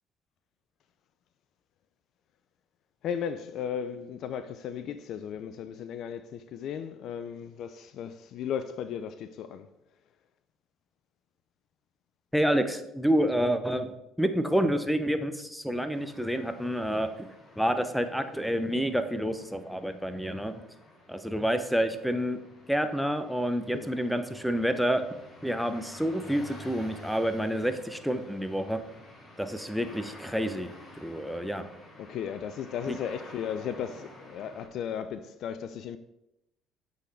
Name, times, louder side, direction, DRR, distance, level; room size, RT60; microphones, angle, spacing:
voice 1, 3.0-9.7 23.7-23.9 32.0-36.0, left 8 dB, 60° left, 0.4 m, -35 dB
voice 2, 12.3-13.9 14.2-17.1 17.6-20.5 21.1-22.4 22.7-25.0 25.4-28.8 29.4-30.7 31.0-31.6 32.9-33.0, equal, ahead, 0.6 m, -28 dB
sound 1, 15.9-34.7, left 1 dB, 30° left, 2.4 m, -50 dB
8.1 x 3.9 x 3.4 m
hypercardioid pair, 65°, 0 cm